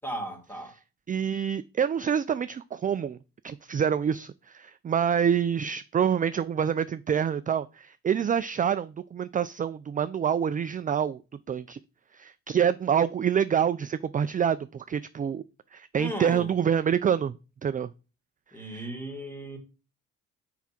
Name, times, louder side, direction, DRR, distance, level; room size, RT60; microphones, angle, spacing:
voice 1, 0.0-0.8 16.0-16.6 18.5-19.6, right 1 dB, 5° left, 2.3 m, -36 dB
voice 2, 1.1-3.2 3.4-11.2 11.5-11.8 12.1-15.4 15.7-17.3 17.6-17.9 18.7-18.8, right 8 dB, 30° right, 0.4 m, -26 dB
5.8 x 4.9 x 5.9 m
cardioid pair, 90°, 30 cm